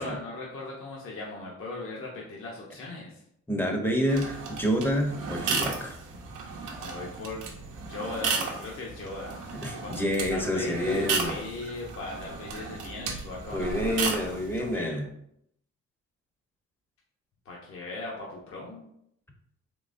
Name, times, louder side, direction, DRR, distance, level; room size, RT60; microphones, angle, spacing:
voice 1, 0.0-3.2 6.8-7.4 7.9-9.4 9.7-9.9 10.3-15.0 17.5-18.8, left 2 dB, 45° left, -3 dB, 0.8 m, -38 dB
voice 2, 3.5-6.0 9.6-11.3 13.5-15.1, equal, 5° left, 2 dB, 0.7 m, -28 dB
sound 1, 4.1-14.8, right 4 dB, 90° right, 0.7 m, -34 dB
3.7 x 2.9 x 2.5 m, 0.73 s
cardioid pair, 90°, 30 cm